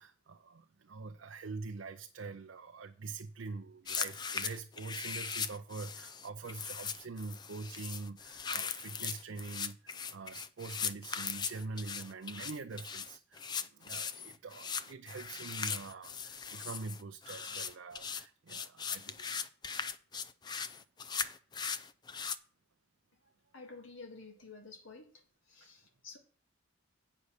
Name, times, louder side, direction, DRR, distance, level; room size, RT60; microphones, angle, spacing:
voice 1, 0.0-19.4 25.6-25.7, right 4 dB, 70° right, 0.5 m, -45 dB
sound 1, 3.9-22.4, left 6 dB, 20° left, 0.3 m, -39 dB
voice 2, 23.5-25.1 25.5-26.2, left 3 dB, 80° left, 1.9 m, -50 dB
8.2 x 5.5 x 6.5 m
head